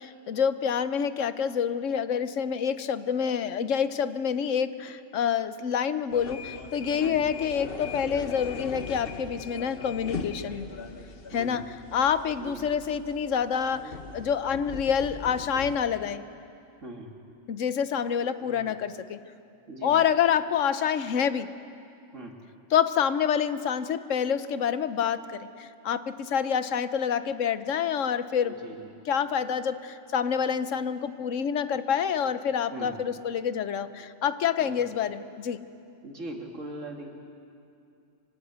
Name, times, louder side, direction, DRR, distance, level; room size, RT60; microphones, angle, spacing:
voice 1, 0.0-10.7 11.3-11.6 11.9-16.2 17.5-19.2 19.8-21.5 22.7-28.6 29.1-35.6, left 7 dB, 85° left, 12 dB, 1.2 m, -27 dB
sound 1, 6.1-15.8, left 4 dB, 50° left, 1.4 m, -40 dB
voice 2, 7.0-7.3 11.3-11.6 12.4-12.7 16.8-17.1 18.4-18.8 19.7-20.1 22.1-22.4 28.4-28.9 32.7-33.0 34.6-34.9 36.0-37.1, right 2 dB, 85° right, 2 dB, 2.7 m, -40 dB
25.0 x 19.0 x 8.1 m, 2.6 s
omnidirectional pair, 1.3 m